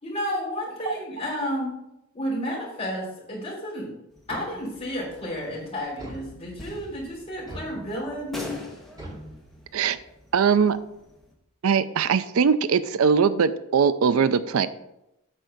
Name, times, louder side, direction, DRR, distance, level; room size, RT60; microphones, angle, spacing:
voice 1, 0.0-1.8 2.1-3.9 4.3-8.5, equal, 30° left, -4 dB, 3.5 m, -31 dB
sound 1, 4.1-11.3, equal, ahead, 1.5 m, -45 dB
sound 2, 4.3-5.0 6.0-6.8 7.5-8.3 9.0-10.0, right 1 dB, 20° right, 2.4 m, -43 dB
voice 2, 10.3-10.8 11.6-14.7, right 6 dB, 75° right, 14 dB, 0.4 m, -21 dB
8.5 x 4.5 x 6.5 m, 0.87 s
head